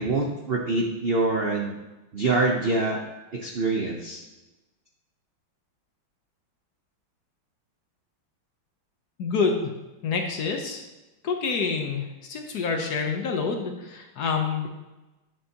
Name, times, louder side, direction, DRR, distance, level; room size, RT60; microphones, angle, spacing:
voice 1, 0.0-1.8 2.1-3.0 3.4-4.2, right 3 dB, 65° right, 0 dB, 0.6 m, -25 dB
voice 2, 9.2-9.7 10.0-10.8 11.2-14.7, left 5 dB, 60° left, 4 dB, 1.2 m, -27 dB
10.5 x 6.7 x 2.9 m, 1.1 s
omnidirectional pair, 2.2 m